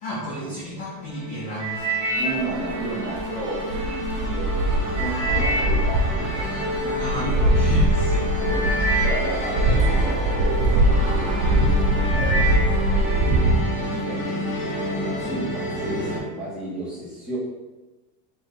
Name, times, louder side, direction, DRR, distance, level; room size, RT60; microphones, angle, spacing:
voice 1, 0.0-1.9 6.9-8.4, equal, 20° left, -7 dB, 0.3 m, -33 dB
sound 1, 0.9-16.2, equal, 45° left, 1.2 m, -30 dB
sound 2, 1.6-3.9 4.5-7.3 8.0-8.1 8.4-10.8 11.3-11.6 11.9-13.4 13.8-14.2 14.8-14.9, right 2 dB, 40° right, 0.9 m, -30 dB
voice 2, 2.2-7.5 8.4-8.7 9.0-17.4, right 2 dB, ahead, -10 dB, 1.1 m, -33 dB
sound 3, 2.2-13.6, right 1 dB, 65° right, 0.6 m, -22 dB
3.4 x 2.6 x 4.0 m, 1.1 s
cardioid pair, 155°, 49 cm